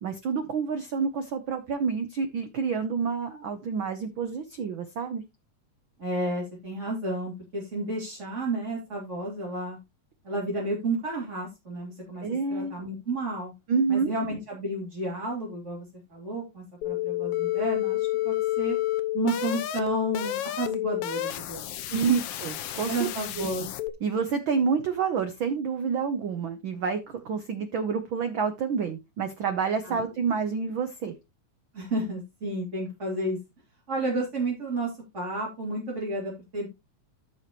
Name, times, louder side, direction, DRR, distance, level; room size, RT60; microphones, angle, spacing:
voice 1, 0.0-5.2 12.2-12.7 13.7-14.1 21.9-23.1 23.4-23.5 24.0-31.1, right 5 dB, 75° right, 9 dB, 1.1 m, -28 dB
voice 2, 6.0-9.8 10.2-12.2 12.5-13.5 13.9-15.8 16.1-18.8 19.1-22.2 22.9-23.7 29.8-30.0 31.7-33.4 33.9-36.7, right 2 dB, 25° right, -5 dB, 3.2 m, -31 dB
sound 1, 16.8-23.9, left 14 dB, 75° left, 1.4 m, -30 dB
14.0 x 6.0 x 3.0 m, 0.24 s
omnidirectional pair, 3.4 m